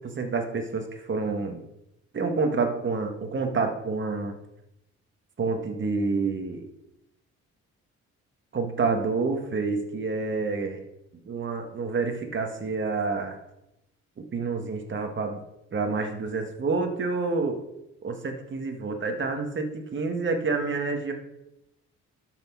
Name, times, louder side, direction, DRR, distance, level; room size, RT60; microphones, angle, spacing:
voice 1, 0.0-1.6 2.1-4.3 5.4-6.7 8.5-10.8 11.3-13.4 14.2-15.4 15.7-17.6 18.0-21.1, right 4 dB, 40° right, 4 dB, 1.7 m, -28 dB
12.0 x 6.3 x 4.7 m, 0.88 s
cardioid pair, 90°, 30 cm